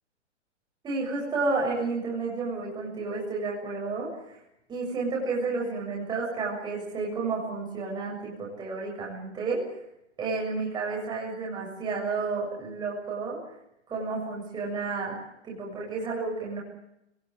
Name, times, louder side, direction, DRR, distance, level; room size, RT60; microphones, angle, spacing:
voice 1, 0.8-4.4 4.7-9.6 10.2-13.4 13.9-15.2 15.4-16.6, right 3 dB, 10° right, -3 dB, 7.2 m, -31 dB
25.0 x 18.5 x 9.8 m, 0.84 s
hypercardioid pair, 160°, 35 cm